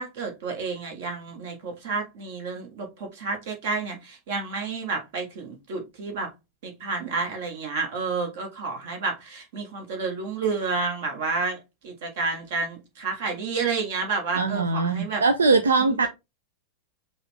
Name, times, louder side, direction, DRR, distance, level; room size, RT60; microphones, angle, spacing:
voice 1, 0.0-6.3 6.6-11.6 11.8-15.2, right 4 dB, 50° right, 1.5 m, -30 dB
voice 2, 14.4-16.1, right 3 dB, 70° right, 0.4 m, -21 dB
5.5 x 2.5 x 3.4 m
figure-of-eight pair, 90°, 0 cm